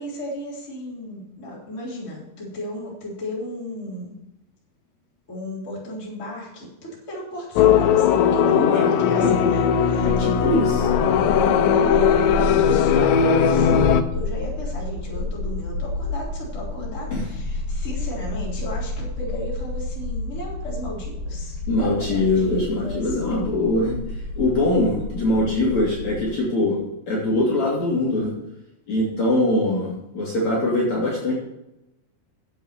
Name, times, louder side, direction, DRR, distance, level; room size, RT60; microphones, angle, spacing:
voice 1, 0.0-4.1 5.3-10.6 11.1-23.1, equal, 20° left, -5 dB, 3.7 m, -34 dB
sound 1, 7.6-14.0, left 7 dB, 80° left, 2.0 m, -18 dB
voice 2, 8.4-9.4 10.0-10.8 17.1-17.3 21.7-26.8 27.1-28.3 28.9-31.3, left 2 dB, 45° left, -6 dB, 3.9 m, -22 dB
sound 2, 10.0-26.4, left 2 dB, 65° left, 2.2 m, -30 dB
9.3 x 8.0 x 6.8 m, 0.90 s
omnidirectional pair, 4.9 m